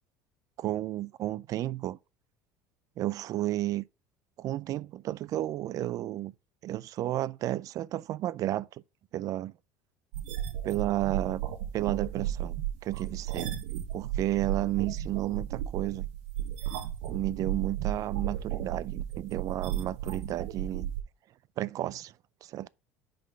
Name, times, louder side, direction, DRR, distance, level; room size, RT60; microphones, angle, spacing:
voice 1, 0.6-2.0 3.0-3.8 4.4-6.3 6.6-8.7 9.1-9.5 10.6-11.4 11.7-13.6 13.9-16.1 17.1-20.9 21.6-22.1 22.4-22.7, right 14 dB, 50° right, 0.4 m, -32 dB
sound 1, 10.1-21.0, right 11 dB, 80° right, 1.0 m, -34 dB
5.1 x 3.9 x 5.5 m
supercardioid pair, 90°, 8 cm